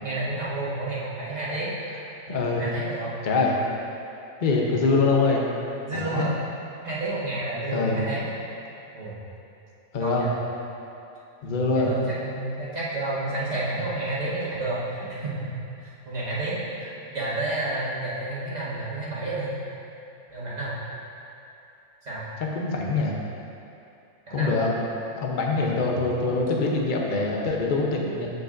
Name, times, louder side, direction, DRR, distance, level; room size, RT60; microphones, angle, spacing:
voice 1, 0.0-1.7 2.3-3.2 4.6-4.7 5.9-6.3 6.8-8.3 8.9-9.1 10.0-10.3 11.5-15.5 15.8-19.5 20.3-20.8 22.1-22.2 24.3-24.6 25.6-25.7, right 2 dB, 30° right, -9 dB, 1.7 m, -30 dB
voice 2, 2.3-2.6 3.2-3.5 4.4-5.4 5.9-6.3 7.7-8.0 9.9-10.3 11.4-11.9 22.5-23.2 24.3-24.7 25.2-28.3, left 3 dB, 40° left, -1 dB, 0.9 m, -24 dB
13.5 x 5.2 x 2.6 m, 2.7 s
omnidirectional pair, 1.4 m